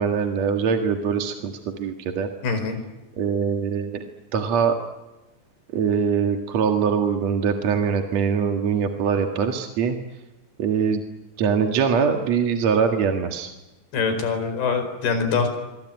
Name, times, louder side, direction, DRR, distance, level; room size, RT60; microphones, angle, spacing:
voice 1, 0.0-2.3 3.2-4.0 4.3-4.8 5.7-10.0 10.6-11.0 11.4-13.5, right 6 dB, 50° right, 4 dB, 2.5 m, -23 dB
voice 2, 2.4-2.8 13.9-15.5, left 5 dB, 90° left, 8 dB, 6.7 m, -24 dB
26.0 x 24.5 x 9.1 m, 1.0 s
omnidirectional pair, 4.4 m